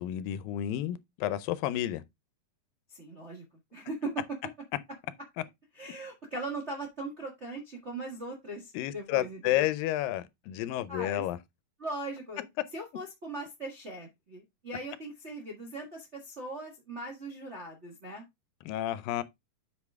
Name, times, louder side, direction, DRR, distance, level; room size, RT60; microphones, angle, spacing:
voice 1, 0.0-2.0 8.7-11.4 18.7-19.2, left 13 dB, 85° left, 2.4 m, -31 dB
voice 2, 2.9-3.4 3.7-4.4 5.7-9.7 10.9-11.2 11.8-12.4 12.7-18.2, right 2 dB, 40° right, 0.9 m, -39 dB
8.3 x 5.0 x 3.5 m
omnidirectional pair, 4.0 m